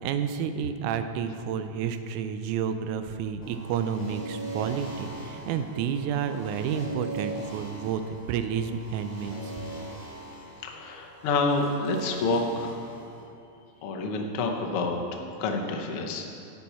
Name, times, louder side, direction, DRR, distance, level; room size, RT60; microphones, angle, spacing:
voice 1, 0.0-8.0 8.3-9.5, right 7 dB, 85° right, 9 dB, 2.0 m, -30 dB
sound 1, 3.4-13.2, right 2 dB, 25° left, 0.8 m, -40 dB
voice 2, 10.6-12.7 13.8-16.2, left 3 dB, 65° left, 1 dB, 1.4 m, -28 dB
10.5 x 8.2 x 4.3 m, 2.5 s
omnidirectional pair, 3.4 m